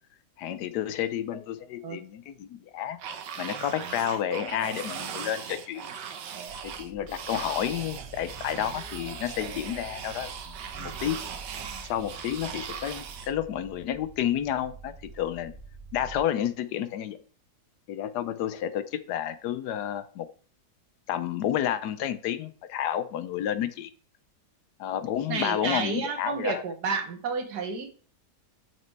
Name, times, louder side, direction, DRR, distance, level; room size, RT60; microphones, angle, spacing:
voice 1, 0.4-3.0 3.4-5.9 6.6-11.2 11.9-15.5 15.9-17.2 17.9-20.3 21.1-23.9 24.8-26.6, left 10 dB, 75° left, 13 dB, 1.2 m, -30 dB
sound 1, 3.0-13.3, right 7 dB, 90° right, 1.5 m, -39 dB
sound 2, 6.5-16.2, right 3 dB, 35° right, 1.0 m, -47 dB
voice 2, 25.3-27.9, right 5 dB, 70° right, 7 dB, 1.6 m, -31 dB
6.2 x 5.9 x 4.5 m, 0.42 s
omnidirectional pair, 1.8 m